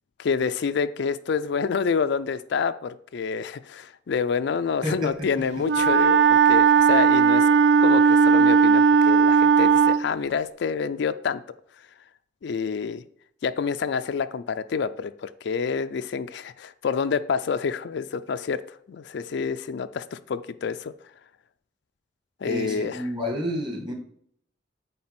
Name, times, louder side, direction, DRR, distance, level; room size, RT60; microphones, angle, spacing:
voice 1, 0.2-7.5 7.8-11.4 12.4-13.0 13.4-20.9 22.4-23.1, left 6 dB, 65° left, 11 dB, 0.4 m, -28 dB
voice 2, 4.8-5.3 22.5-23.9, equal, 25° right, 2 dB, 1.8 m, -29 dB
Wind instrument woodwind instrument, 5.6-10.1, right 6 dB, 60° right, 0.4 m, -17 dB
8.6 x 3.4 x 5.8 m, 0.66 s
head